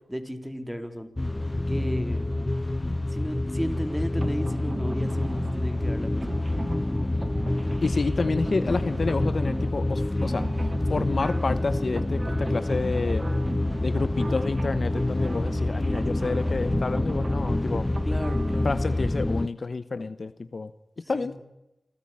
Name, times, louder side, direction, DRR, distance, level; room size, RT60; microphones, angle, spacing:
voice 1, 0.1-1.1 1.7-2.3 3.1-6.4 18.0-18.8 21.0-21.4, equal, 5° right, 7 dB, 3.8 m, -34 dB
sound 1, 1.2-19.5, left 2 dB, 25° left, 0.7 m, -27 dB
sound 2, 3.7-19.0, right 2 dB, 40° right, 2.2 m, -39 dB
voice 2, 7.8-10.5 10.9-13.2 13.8-17.9 18.6-20.7 21.1-21.4, left 3 dB, 60° left, 13 dB, 1.1 m, -29 dB
27.0 x 14.0 x 8.9 m, 0.94 s
cardioid pair, 45°, 0 cm